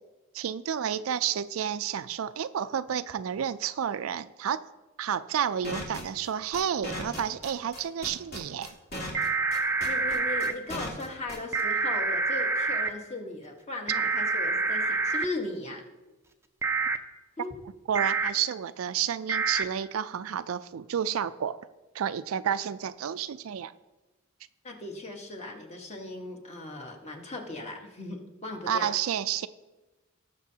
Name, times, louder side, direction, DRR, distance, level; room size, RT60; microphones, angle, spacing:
voice 1, 0.3-4.6 5.0-8.7 17.9-21.6 21.9-23.7 28.7-29.5, right 8 dB, 90° right, 13 dB, 0.4 m, -30 dB
sound 1, 5.6-11.6, left 1 dB, 55° left, 2.3 m, -37 dB
sound 2, 9.1-10.5 11.5-12.9 13.9-15.2 16.6-17.0 18.0-18.3 19.3-19.6, right 4 dB, 15° right, 0.5 m, -27 dB
voice 2, 9.9-15.8 17.4-17.5 24.6-28.9, left 2 dB, 35° left, 2 dB, 1.3 m, -38 dB
18.5 x 6.6 x 2.8 m, 1.1 s
head